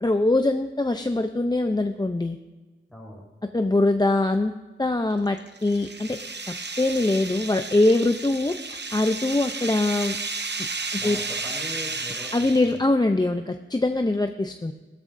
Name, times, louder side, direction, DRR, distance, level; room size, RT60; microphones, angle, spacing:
voice 1, 0.0-2.4 3.5-4.5 4.8-6.2 6.8-10.2 10.9-11.2 12.3-14.7, left 2 dB, 20° left, 6 dB, 0.5 m, -23 dB
voice 2, 2.9-3.2 10.9-12.8, left 1 dB, ahead, -2 dB, 4.3 m, -40 dB
sound 1, 5.1-12.8, right 3 dB, 55° right, 0.9 m, -33 dB
15.5 x 12.5 x 2.6 m, 1.2 s
wide cardioid pair, 55°, 21 cm